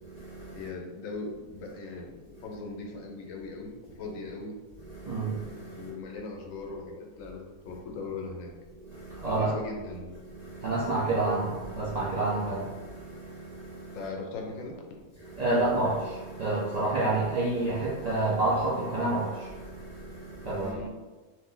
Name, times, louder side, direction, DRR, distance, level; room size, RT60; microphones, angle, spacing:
voice 1, 0.0-0.7 2.3-2.4 4.8-5.9 7.7-7.8 8.8-9.5 10.2-14.0 15.2-20.8, right 2 dB, 90° right, -7 dB, 0.3 m, -30 dB
voice 2, 0.5-3.7 4.0-4.5 5.8-8.5 9.2-10.2 13.9-14.8 20.6-20.9, left 3 dB, 75° left, 1 dB, 1.0 m, -39 dB
2.7 x 2.5 x 3.7 m, 1.3 s
omnidirectional pair, 1.4 m